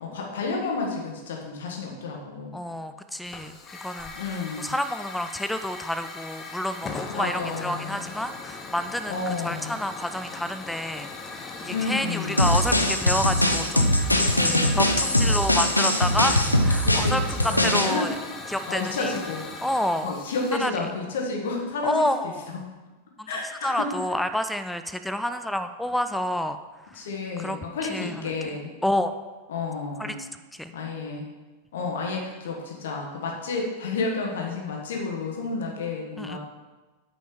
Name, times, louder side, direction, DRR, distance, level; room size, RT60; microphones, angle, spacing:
voice 1, 0.0-2.5 4.1-4.7 7.1-8.1 9.1-9.8 11.7-12.6 14.2-14.9 16.8-18.1 18.7-19.4 20.0-22.1 22.5-22.6 23.3-23.9 26.9-28.7 29.5-30.1 30.7-31.3 31.7-36.4, left 3 dB, 60° left, 0 dB, 1.7 m, -31 dB
voice 2, 2.5-3.6 3.8-14.2 14.7-18.2 18.5-19.1 19.6-20.1 20.6-20.7 21.8-22.5 23.2-26.6 26.9-27.0 27.4-27.6 27.9-28.4 28.8-29.1 30.0-30.1 30.5-30.7 36.2-36.4, left 1 dB, 5° left, 11 dB, 0.4 m, -29 dB
Hiss / Fire, 3.2-20.6, left 4 dB, 20° left, 0.9 m, -39 dB
sound 1, 12.4-17.9, left 1 dB, 85° left, 0.7 m, -21 dB
9.0 x 5.2 x 5.1 m, 1.2 s
figure-of-eight pair, 90°, 0 cm